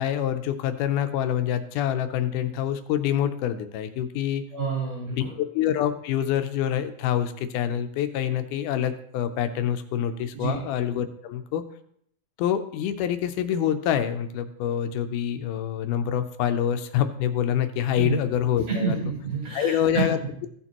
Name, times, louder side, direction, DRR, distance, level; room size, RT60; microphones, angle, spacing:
voice 1, 0.0-4.4 5.2-5.3 5.5-11.6 12.4-19.0 19.5-20.5, left 10 dB, 90° left, 9 dB, 2.2 m, -26 dB
voice 2, 4.5-5.3 10.3-10.6 17.9-18.2 18.7-20.3, right 4 dB, 40° right, -6 dB, 5.0 m, -28 dB
15.0 x 6.8 x 3.0 m, 0.66 s
omnidirectional pair, 3.6 m